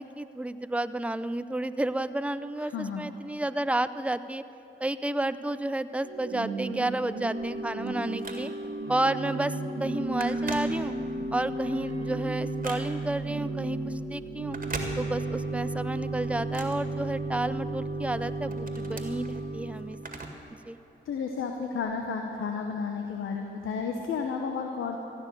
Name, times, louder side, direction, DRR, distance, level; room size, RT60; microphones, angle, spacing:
voice 1, 0.0-4.4 4.8-8.5 8.9-10.9 11.3-14.6 15.0-20.0 20.7-20.8, right 1 dB, 5° right, 13 dB, 0.6 m, -31 dB
voice 2, 2.6-3.1 21.0-25.0, left 5 dB, 75° left, 4 dB, 0.9 m, -32 dB
Organ / Church bell, 6.0-20.2, right 2 dB, 75° right, 1.1 m, -34 dB
Telephone, 7.4-8.8 9.3-9.5 9.8-11.3 11.7-13.2 14.4-15.5 15.8-17.6 18.0-20.6 20.8-20.9 21.8-21.9, right 3 dB, 40° right, 2.0 m, -41 dB
15.5 x 6.5 x 9.9 m, 2.9 s
supercardioid pair, 40°, 21 cm